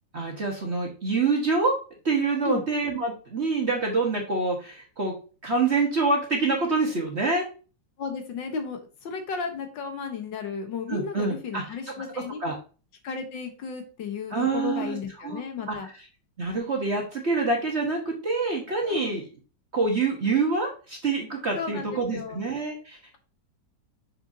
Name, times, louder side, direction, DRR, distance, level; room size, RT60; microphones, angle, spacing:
voice 1, 0.1-1.7 2.0-5.1 5.4-7.5 10.9-11.6 12.4-12.6 14.3-15.0 15.2-15.4 15.7-15.8 16.4-19.2 19.7-23.2, right 3 dB, 40° right, 0 dB, 1.4 m, -26 dB
voice 2, 8.0-12.4 13.0-15.9 18.8-19.2 21.6-22.4, left 5 dB, 80° left, 5 dB, 1.9 m, -34 dB
6.6 x 5.8 x 2.8 m, 0.35 s
omnidirectional pair, 2.0 m